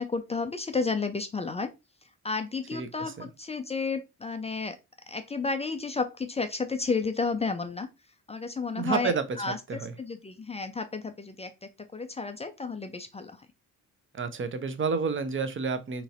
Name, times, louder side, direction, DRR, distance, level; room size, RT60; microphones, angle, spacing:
voice 1, 0.0-1.7 2.2-4.8 5.1-7.9 8.3-9.6 10.0-13.4, left 4 dB, 15° left, 0.3 m, -32 dB
voice 2, 2.7-3.3 8.7-9.9 14.1-16.0, right 5 dB, 25° right, 0.7 m, -30 dB
3.8 x 2.9 x 2.4 m
figure-of-eight pair, 40°, 48 cm